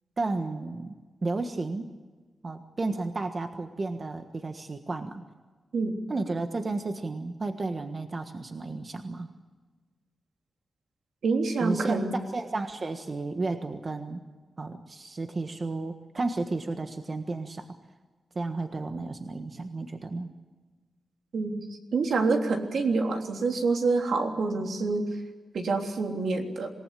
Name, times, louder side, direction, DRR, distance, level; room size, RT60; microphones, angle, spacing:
voice 1, 0.2-1.9 2.4-5.2 6.1-9.3 11.6-12.0 12.3-14.2 14.6-17.8 18.3-20.4, right 3 dB, 35° right, 7 dB, 1.4 m, -32 dB
voice 2, 11.2-12.3 21.3-21.6 21.9-25.1 25.5-26.7, right 3 dB, 75° right, 3 dB, 3.4 m, -27 dB
27.0 x 18.5 x 8.4 m, 1.3 s
wide cardioid pair, 130°, 0 cm